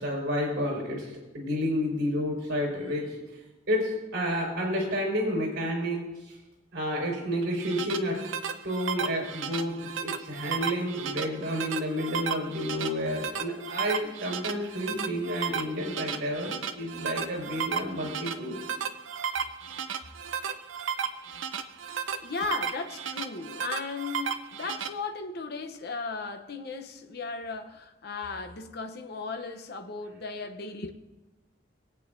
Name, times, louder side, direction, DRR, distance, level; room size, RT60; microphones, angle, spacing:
voice 1, 0.0-3.2 3.7-6.4 6.7-8.2 8.6-18.6, equal, 60° right, 4.7 m, -30 dB
sound 1, 7.4-24.9, right 7 dB, 85° right, 0.6 m, -34 dB
voice 2, 22.2-30.9, left 4 dB, 55° left, 0.8 m, -36 dB
22.0 x 8.6 x 2.6 m
head